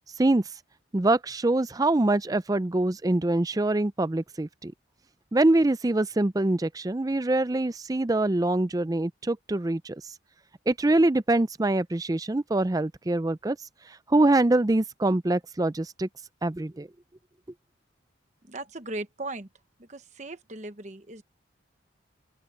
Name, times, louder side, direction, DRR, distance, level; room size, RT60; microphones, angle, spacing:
voice 1, 0.9-4.7 5.3-10.0 10.7-13.6 14.1-16.1 16.4-16.9, right 2 dB, 20° right, 0.4 m, -24 dB
voice 2, 18.5-19.5 19.8-21.2, right 2 dB, 40° right, 1.1 m, -38 dB
open air
head